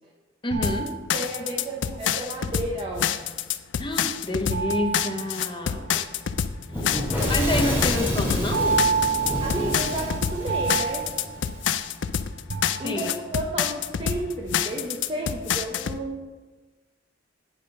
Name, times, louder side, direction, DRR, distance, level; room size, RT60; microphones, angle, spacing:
voice 1, 0.4-0.9 3.8-5.9 6.8-6.9 7.3-8.9 12.8-13.2, left 1 dB, 25° left, 3 dB, 0.8 m, -28 dB
sound 1, 0.5-1.7 4.5-6.1 8.5-12.1 12.5-13.4, right 5 dB, 65° right, 0.8 m, -29 dB
sound 2, 0.6-16.0, left 9 dB, 70° left, 0.4 m, -27 dB
voice 2, 1.1-3.1 5.6-6.0 6.7-7.1 9.4-11.1 12.8-16.2, right 1 dB, 30° right, -1 dB, 0.8 m, -32 dB
Fire / Explosion, 6.7-11.6, equal, 10° right, 2.5 m, -28 dB
9.1 x 5.1 x 5.3 m, 1.3 s
head